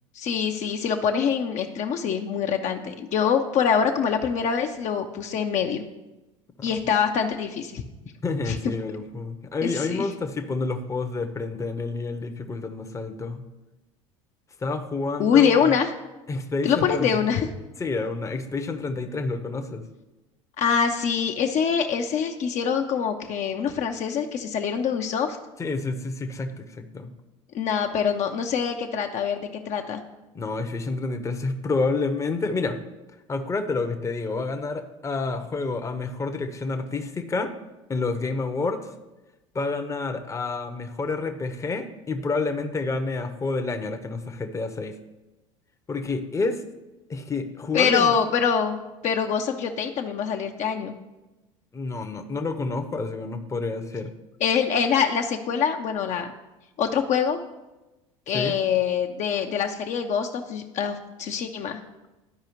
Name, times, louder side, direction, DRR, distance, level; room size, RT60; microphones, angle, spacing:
voice 1, 0.1-5.8 6.6-7.8 8.5-8.6 9.6-10.0 15.2-15.9 16.6-17.5 20.6-25.4 27.5-30.0 47.7-48.8 49.0-50.9 54.4-56.3 56.8-57.4 58.3-61.8, left 7 dB, 45° left, 4 dB, 0.7 m, -24 dB
voice 2, 8.2-13.4 14.6-15.7 16.3-17.2 17.8-19.8 25.6-27.1 30.3-32.8 33.3-37.5 37.9-38.9 39.5-45.0 45.9-46.6 47.1-48.1 51.7-54.1 58.3-58.6, left 3 dB, 20° left, 6 dB, 0.8 m, -29 dB
12.0 x 4.7 x 3.1 m, 1.0 s
hypercardioid pair, 75°, 17 cm